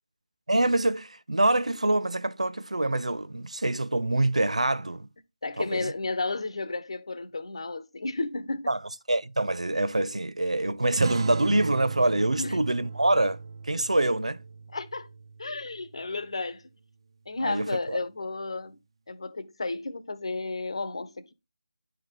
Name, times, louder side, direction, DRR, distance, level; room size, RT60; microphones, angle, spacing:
voice 1, 0.5-5.1 5.6-5.9 8.7-8.8 9.1-13.4 13.6-14.4 17.4-18.0, right 2 dB, 80° right, 0.7 m, -25 dB
voice 2, 5.4-8.7 12.4-12.9 14.7-15.1 15.4-16.6 17.3-18.8 19.1-21.3, left 3 dB, 55° left, 1.2 m, -33 dB
sound 1, 11.0-16.0, right 4 dB, 45° right, 0.3 m, -35 dB
10.0 x 4.5 x 3.8 m
figure-of-eight pair, 160°, 3 cm